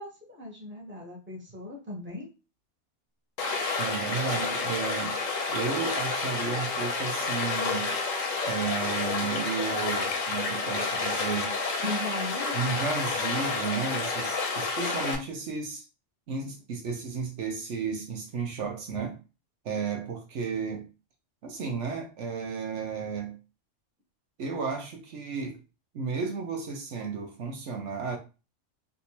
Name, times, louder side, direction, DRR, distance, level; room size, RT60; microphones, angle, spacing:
voice 1, 0.0-2.3 11.8-12.8, left 1 dB, 10° right, 0.9 m, -37 dB
Stream, 3.4-15.2, left 4 dB, 90° left, 1.2 m, -30 dB
voice 2, 3.8-5.2 5.5-7.9 8.5-11.6 12.5-15.8 16.3-19.2 19.6-20.9 21.4-23.4 24.4-25.6 25.9-28.2, right 5 dB, 70° right, 1.0 m, -33 dB
3.5 x 2.6 x 2.8 m
omnidirectional pair, 1.3 m